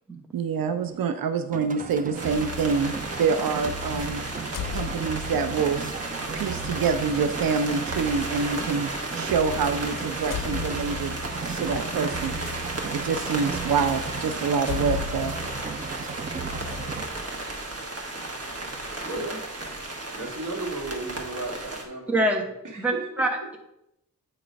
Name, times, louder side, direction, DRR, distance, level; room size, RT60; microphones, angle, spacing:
voice 1, 0.3-5.8 6.3-11.1 11.5-12.3 12.9-15.3, right 5 dB, 90° right, 8 dB, 0.5 m, -26 dB
sound 1, 1.5-17.1, right 4 dB, 25° right, 0.3 m, -36 dB
sound 2, 1.9-2.1 4.0-5.5 6.4-6.6 8.5-8.6 9.5-9.7 9.9-12.5 13.2-13.3 13.8-13.9 14.5-16.3, left 9 dB, 70° left, 0.6 m, -36 dB
sound 3, 2.2-21.9, right 2 dB, 45° right, 1.1 m, -34 dB
voice 2, 19.0-19.8 20.1-22.3 22.6-23.0, right 2 dB, 65° right, 0 dB, 1.5 m, -35 dB
voice 3, 22.1-22.4 22.8-23.6, right 1 dB, 5° right, 1 dB, 0.9 m, -25 dB
8.6 x 3.0 x 5.1 m, 0.82 s
wide cardioid pair, 140°, 34 cm